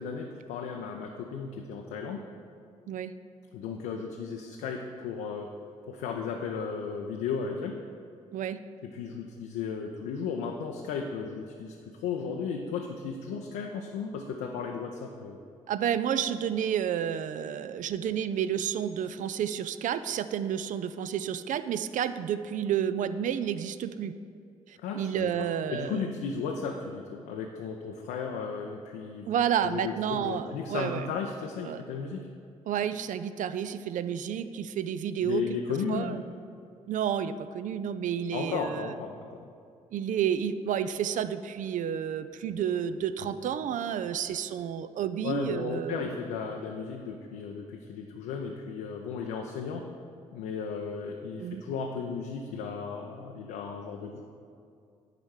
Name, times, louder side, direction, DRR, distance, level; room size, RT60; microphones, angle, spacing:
voice 1, 0.0-2.3 3.5-5.5 5.9-7.8 8.8-15.4 24.8-29.3 29.6-32.2 35.2-36.2 38.3-39.5 43.2-43.3 45.2-49.9 50.3-54.2, left 5 dB, 70° left, 2 dB, 0.5 m, -35 dB
voice 2, 15.7-24.1 24.7-26.1 29.3-31.1 31.6-31.8 32.7-35.4 35.9-36.2 36.9-38.9 39.9-46.1 51.4-51.6, right 9 dB, 50° right, 13 dB, 0.4 m, -30 dB
10.5 x 4.2 x 4.7 m, 2.4 s
figure-of-eight pair, 40°, 17 cm